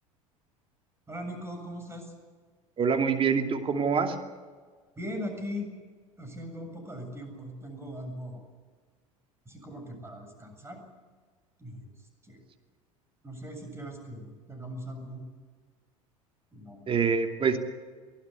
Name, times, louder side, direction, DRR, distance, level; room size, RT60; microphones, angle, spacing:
voice 1, 1.1-2.1 5.0-5.7 6.2-8.4 9.5-10.8 11.6-11.9 12.2-12.4 13.2-15.2 16.5-17.1, equal, 15° right, 5 dB, 7.3 m, -40 dB
voice 2, 2.8-4.1 16.9-17.6, right 6 dB, 30° right, 5 dB, 2.7 m, -25 dB
23.5 x 16.5 x 8.5 m, 1.5 s
figure-of-eight pair, 70°, 18 cm